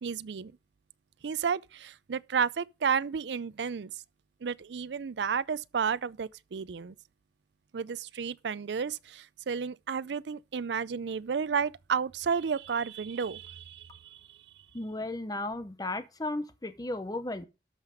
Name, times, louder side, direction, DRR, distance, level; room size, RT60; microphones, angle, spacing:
voice 1, 0.0-0.5 1.2-3.9 4.4-6.9 7.7-13.8, right 6 dB, 80° right, 0.4 m, -32 dB
voice 2, 14.7-17.5, left 2 dB, 20° left, 0.7 m, -35 dB
13.0 x 5.8 x 5.1 m
head